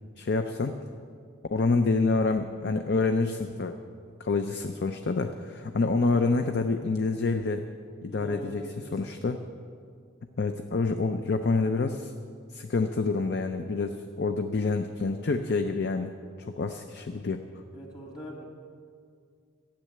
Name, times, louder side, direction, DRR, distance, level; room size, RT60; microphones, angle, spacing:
voice 1, 0.2-0.8 1.5-3.7 4.2-7.6 8.0-8.6 8.9-9.4 10.4-12.1 12.5-16.2 16.5-17.4, left 3 dB, 60° left, 7 dB, 0.6 m, -27 dB
voice 2, 8.1-9.0 17.7-18.4, left 1 dB, 25° left, -2 dB, 2.7 m, -42 dB
13.5 x 7.5 x 9.3 m, 2.2 s
head